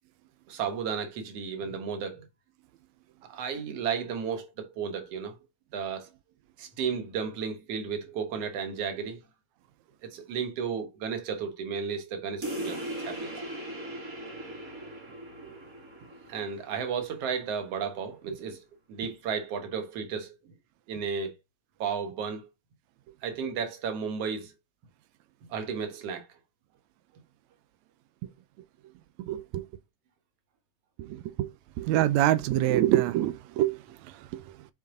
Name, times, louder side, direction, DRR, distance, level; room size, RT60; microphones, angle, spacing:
voice 1, 0.5-2.3 3.3-5.4 5.7-6.1 6.6-9.2 10.0-13.3 16.3-20.5 20.9-21.3 21.8-22.5 23.2-24.5 25.5-26.3, right 6 dB, 55° right, 2.0 m, -33 dB
sound 1, 12.4-17.5, right 1 dB, 25° right, 3.1 m, -39 dB
voice 2, 29.2-29.6 31.0-31.5 31.8-34.7, right 13 dB, 90° right, 1.6 m, -26 dB
7.1 x 5.4 x 3.8 m
omnidirectional pair, 4.0 m